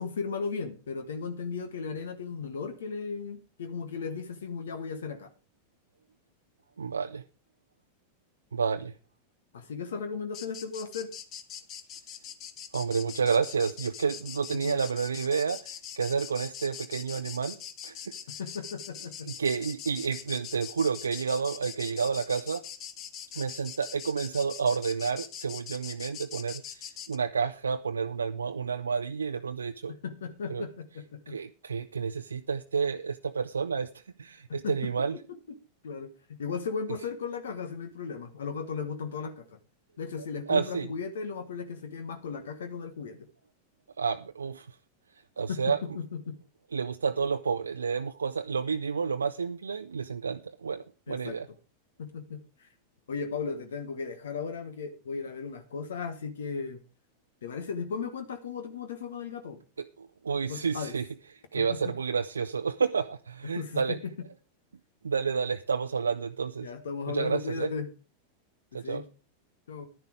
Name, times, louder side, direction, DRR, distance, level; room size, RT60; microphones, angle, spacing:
voice 1, 0.0-5.3 9.5-11.1 14.6-14.7 18.4-19.3 29.9-31.3 34.5-35.2 35.8-39.6 40.0-43.2 45.5-46.4 51.1-51.4 52.0-52.7 53.1-56.8 57.4-59.6 60.5-61.0 61.5-61.8 63.5-64.0 66.6-67.9 68.7-69.0 69.7-69.9, left 5 dB, 65° left, 1.3 m, -36 dB
voice 2, 6.8-7.2 8.5-8.9 12.7-17.6 17.8-18.1 19.2-22.6 23.3-29.9 30.5-30.6 31.3-33.9 34.2-35.2 40.5-40.9 44.0-44.7 45.4-45.8 46.7-51.5 60.0-61.0 61.5-64.0 65.0-66.7 67.1-67.7 68.7-69.0, right 5 dB, 75° right, 0.5 m, -30 dB
sound 1, 10.3-27.2, left 9 dB, 35° left, 1.1 m, -43 dB
11.5 x 10.5 x 4.8 m
figure-of-eight pair, 90°, 0 cm